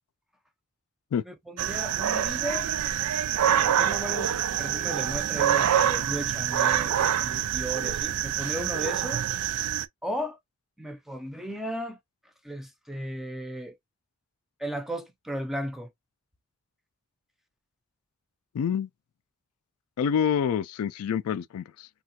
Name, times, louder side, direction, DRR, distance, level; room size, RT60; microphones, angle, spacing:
voice 1, 1.2-2.7 3.4-9.3 10.0-10.4 10.8-12.0 12.4-13.8 14.6-15.9, equal, ahead, 0.5 m, -35 dB
sound 1, 1.6-9.8, right 10 dB, 90° right, 0.4 m, -26 dB
voice 2, 18.5-18.9 20.0-21.9, left 7 dB, 75° left, 0.3 m, -27 dB
3.2 x 2.4 x 2.7 m
head